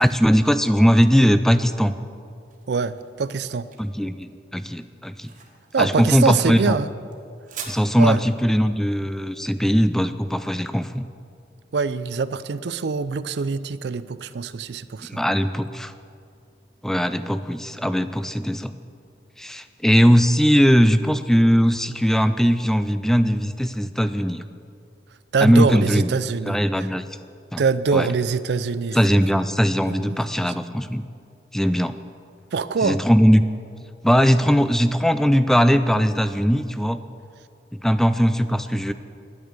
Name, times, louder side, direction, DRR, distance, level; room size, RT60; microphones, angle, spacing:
voice 1, 0.0-1.9 3.8-5.3 5.8-6.8 7.7-11.1 15.1-15.9 16.8-18.7 19.4-24.4 25.4-26.1 26.5-27.0 27.5-27.6 27.9-28.1 28.9-31.0 31.5-31.9 32.8-33.4 34.0-37.0 37.8-38.9, equal, ahead, 12 dB, 0.3 m, -19 dB
sound 1, 2.2-11.0, right 7 dB, 45° right, 1.5 m, -45 dB
voice 2, 2.7-3.7 5.7-6.9 8.0-8.2 11.7-15.2 25.3-26.9 27.6-29.2 29.9-30.5 32.5-33.0, right 5 dB, 65° right, 15 dB, 0.4 m, -24 dB
10.5 x 9.4 x 8.1 m, 2.4 s
head